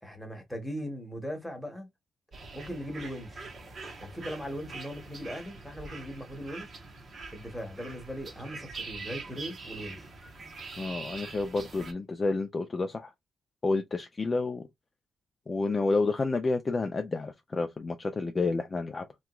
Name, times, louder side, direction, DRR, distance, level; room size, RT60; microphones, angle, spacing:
voice 1, 0.0-1.9 2.5-3.5 4.0-6.7 7.3-10.1, equal, ahead, 1.0 m, -39 dB
sound 1, 2.3-11.9, right 3 dB, 40° right, 0.9 m, -44 dB
voice 2, 10.8-13.1 13.6-14.6 15.5-19.1, left 3 dB, 25° left, 0.4 m, -29 dB
3.4 x 2.9 x 2.2 m
wide cardioid pair, 155°, 0 cm